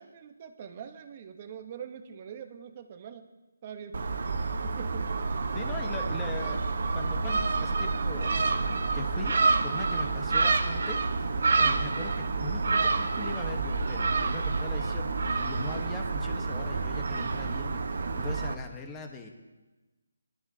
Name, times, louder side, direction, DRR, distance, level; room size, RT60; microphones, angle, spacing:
voice 1, 0.0-3.3 3.6-4.0 4.6-5.1, right 8 dB, 25° right, 8 dB, 0.9 m, -43 dB
Gull seagull, 3.9-18.5, right 4 dB, 55° right, 1.0 m, -28 dB
voice 2, 5.5-6.7 6.9-19.3, left 3 dB, 10° left, 4 dB, 1.1 m, -41 dB
23.0 x 12.5 x 2.8 m, 1.2 s
hypercardioid pair, 170°, 0 cm